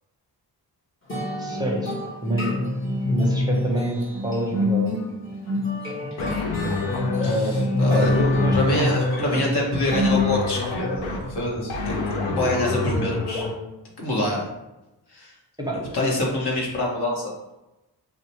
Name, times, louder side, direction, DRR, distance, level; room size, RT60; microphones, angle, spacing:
sound 1, 1.1-10.7, left 2 dB, 25° left, 1.3 m, -26 dB
voice 1, 1.4-1.9 2.2-2.6 3.1-4.9 7.2-7.6 7.9-9.9 15.6-16.1, equal, 10° right, -2 dB, 0.7 m, -27 dB
sound 2, 6.2-13.5, left 3 dB, 80° left, 0.7 m, -28 dB
voice 2, 7.2-8.1 8.5-13.5 14.0-14.4 15.1-15.3 15.9-17.3, left 1 dB, 60° left, -3 dB, 1.1 m, -26 dB
2.8 x 2.2 x 4.1 m, 0.96 s
cardioid pair, 45°, 45 cm